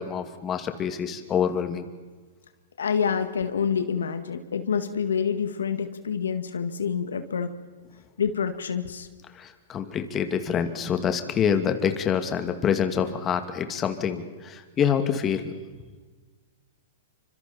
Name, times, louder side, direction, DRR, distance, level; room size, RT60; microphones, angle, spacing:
voice 1, 0.0-1.9 9.3-15.5, left 7 dB, 25° left, 7 dB, 2.3 m, -26 dB
voice 2, 2.8-7.5 8.2-9.1, left 6 dB, 85° left, 9 dB, 1.8 m, -27 dB
28.5 x 25.5 x 4.4 m, 1.4 s
hypercardioid pair, 125°, 0 cm